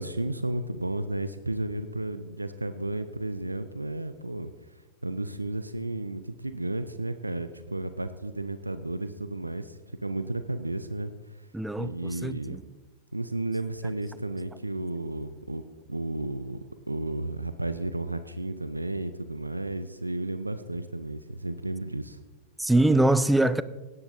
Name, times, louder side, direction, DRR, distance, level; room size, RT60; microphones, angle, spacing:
voice 1, 0.0-11.5 11.8-12.6 13.1-15.6 15.9-16.6 16.9-22.2, right 2 dB, 85° right, 0.5 m, -33 dB
voice 2, 11.5-12.6 22.6-23.6, right 2 dB, 5° right, 0.4 m, -23 dB
17.0 x 10.5 x 2.7 m
figure-of-eight pair, 90°, 0 cm